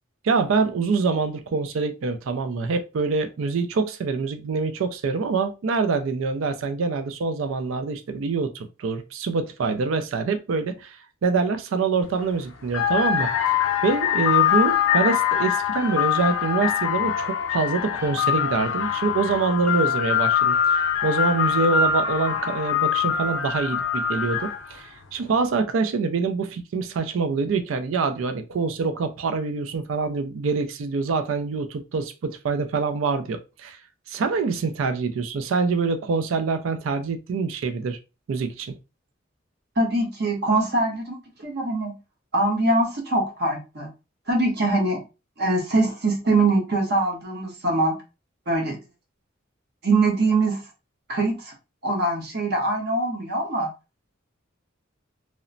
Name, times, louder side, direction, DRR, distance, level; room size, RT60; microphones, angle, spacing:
voice 1, 0.2-13.3 13.8-33.8 34.1-38.0 38.3-38.7, right 4 dB, 80° right, 0.4 m, -25 dB
sound 1, 12.0-12.3 12.7-24.8, left 8 dB, 80° left, 0.5 m, -23 dB
voice 2, 39.8-42.0 42.3-43.9 44.3-45.0 45.4-48.0 48.5-48.8 49.8-50.6 51.1-51.5 51.8-53.7, right 2 dB, 55° right, 0.8 m, -23 dB
2.9 x 2.0 x 2.5 m
head